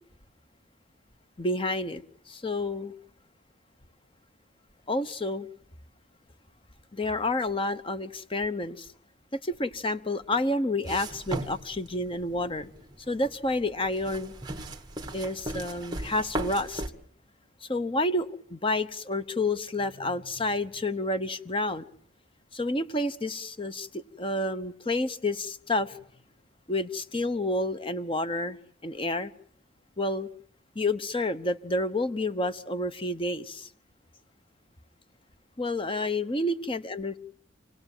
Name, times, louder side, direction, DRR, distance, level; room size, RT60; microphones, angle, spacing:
voice 1, 1.4-2.0 2.3-2.9 4.9-5.5 6.9-8.9 9.3-12.7 13.1-14.3 15.1-16.8 17.6-21.8 22.5-26.0 26.7-28.6 28.8-29.3 30.0-30.3 30.7-33.7 35.6-37.2, left 2 dB, 25° left, 1.0 m, -29 dB
sound 1, 10.8-16.9, right 1 dB, 20° right, 1.7 m, -37 dB
28.0 x 17.5 x 9.0 m
head